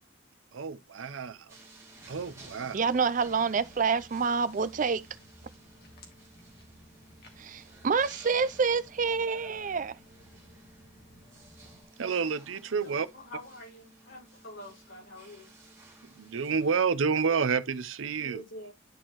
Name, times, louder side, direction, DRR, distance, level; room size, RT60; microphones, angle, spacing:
voice 1, 0.5-1.4 2.1-2.8 12.0-13.1 16.2-18.4, right 5 dB, 85° right, 0.6 m, -29 dB
sound 1, 1.5-16.8, right 2 dB, 15° right, 2.1 m, -55 dB
Walk footsteps, 2.0-11.8, left 1 dB, 55° left, 2.1 m, -56 dB
voice 2, 2.7-5.0 7.4-10.0, right 5 dB, 40° right, 0.4 m, -27 dB
voice 3, 12.8-15.5 18.2-18.7, equal, 75° left, 4.6 m, -46 dB
10.5 x 4.4 x 3.0 m
head